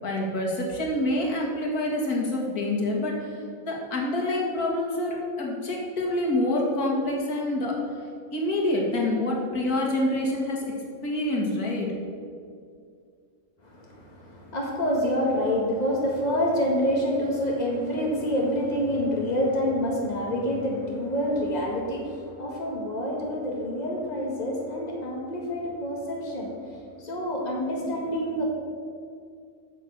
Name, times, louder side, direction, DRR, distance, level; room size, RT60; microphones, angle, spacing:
voice 1, 0.0-3.4 3.7-7.8 8.3-10.7 11.0-11.9, left 1 dB, 85° left, -1 dB, 2.3 m, -27 dB
voice 2, 13.6-28.4, equal, 30° left, -2 dB, 2.0 m, -27 dB
9.3 x 6.7 x 7.3 m, 2.2 s
omnidirectional pair, 1.5 m